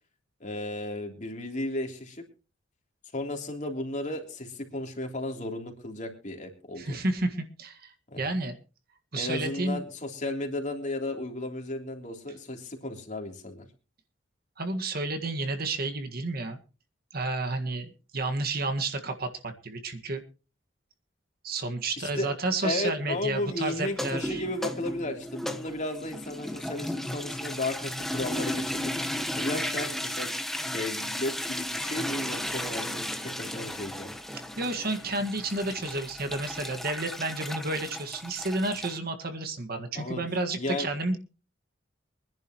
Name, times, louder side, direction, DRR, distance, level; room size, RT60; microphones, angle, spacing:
voice 1, 0.4-2.2 3.1-7.0 8.1-8.3 9.1-13.7 22.0-22.3 22.6-28.9 29.4-30.3 30.7-34.1 39.9-40.2 40.6-40.9, left 2 dB, 40° left, 3 dB, 3.3 m, -34 dB
voice 2, 6.8-8.5 9.1-9.8 14.6-16.6 17.1-20.2 21.4-24.4 34.3-41.2, right 2 dB, 50° right, 6 dB, 1.7 m, -31 dB
sound 1, 23.9-39.0, left 1 dB, ahead, 1.2 m, -34 dB
24.0 x 10.5 x 3.0 m, 0.33 s
head